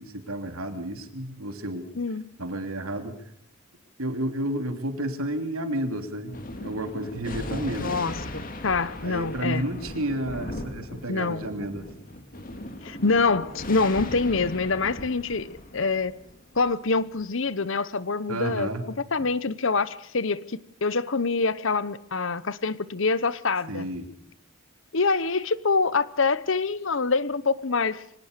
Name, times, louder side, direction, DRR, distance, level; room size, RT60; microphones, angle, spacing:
voice 1, 0.0-1.9 2.4-3.2 4.0-8.1 9.0-11.9 18.3-18.8 19.2-19.3 23.7-24.1, right 1 dB, 85° right, 6 dB, 3.0 m, -31 dB
voice 2, 2.0-2.3 7.8-9.6 11.1-11.4 12.8-16.2 16.6-18.7 19.1-23.9 24.9-28.0, left 4 dB, 60° left, 17 dB, 1.0 m, -25 dB
Thunder, 6.3-17.2, left 1 dB, 40° left, 2.5 m, -38 dB
24.5 x 18.0 x 6.8 m, 0.70 s
head